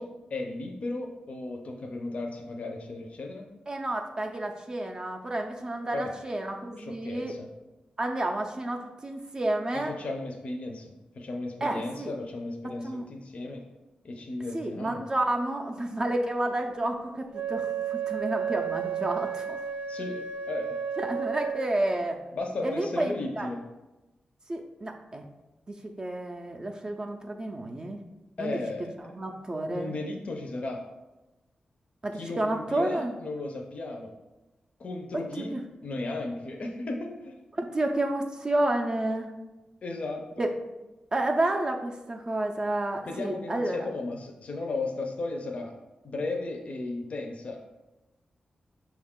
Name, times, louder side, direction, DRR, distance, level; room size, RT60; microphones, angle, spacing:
voice 1, 0.0-3.5 5.9-6.1 6.8-7.5 9.7-13.6 14.0-15.0 19.8-20.8 22.3-23.6 28.4-29.0 29.7-30.8 32.1-34.1 34.8-35.5 35.8-37.3 39.8-40.4 43.1-45.7 46.0-47.6, left 2 dB, 50° left, 2 dB, 0.5 m, -35 dB
voice 2, 3.7-7.3 8.0-9.9 11.6-12.1 12.8-13.0 14.5-19.6 21.0-22.2 22.6-23.5 24.5-25.2 25.7-28.0 28.4-28.6 29.1-29.9 32.0-33.1 35.4-35.6 37.6-39.3 40.4-40.5 41.1-43.8, right 1 dB, 30° right, 3 dB, 0.4 m, -30 dB
Wind instrument woodwind instrument, 17.3-22.0, right 7 dB, 80° right, 0.6 m, -32 dB
5.8 x 2.3 x 3.6 m, 1.0 s
wide cardioid pair, 140°, 3 cm